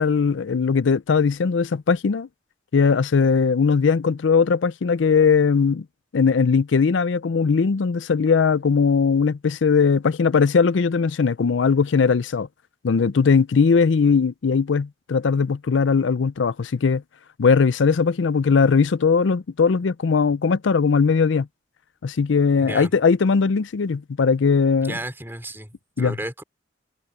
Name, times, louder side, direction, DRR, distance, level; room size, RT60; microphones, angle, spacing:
voice 1, 0.0-2.3 2.7-5.8 6.1-12.5 12.8-17.0 17.4-21.5 22.0-25.0 26.0-26.2, left 5 dB, 85° left, 0.5 m, -19 dB
voice 2, 22.6-22.9 24.8-26.4, right 1 dB, 10° right, 3.7 m, -33 dB
head